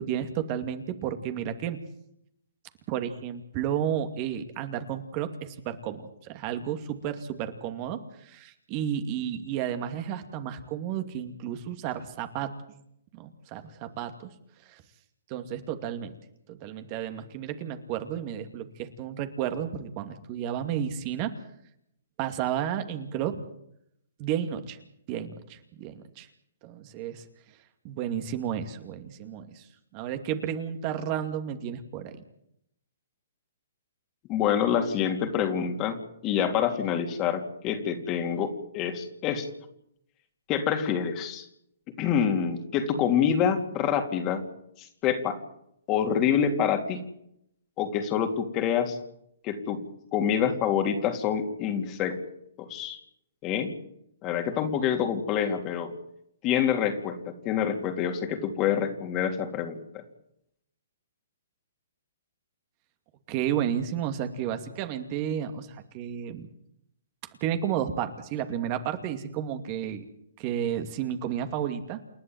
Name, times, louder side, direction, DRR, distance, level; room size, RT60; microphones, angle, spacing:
voice 1, 0.0-1.8 2.9-12.5 13.1-14.3 14.7-14.8 15.3-16.1 16.5-21.3 22.2-23.4 24.2-24.8 25.1-26.3 26.6-27.2 27.8-29.7 29.9-32.2 63.3-66.5 67.4-70.0 70.4-72.0, right 9 dB, 35° right, 8 dB, 2.5 m, -32 dB
voice 2, 34.3-39.5 40.5-41.5 42.0-44.4 44.8-45.4 45.9-47.0 47.8-49.0 49.4-49.8 50.1-52.2 52.6-53.0 53.4-53.7 54.2-55.9 56.4-60.0, left 8 dB, 30° left, 6 dB, 3.3 m, -27 dB
28.5 x 11.0 x 9.3 m, 0.73 s
hypercardioid pair, 130°, 0 cm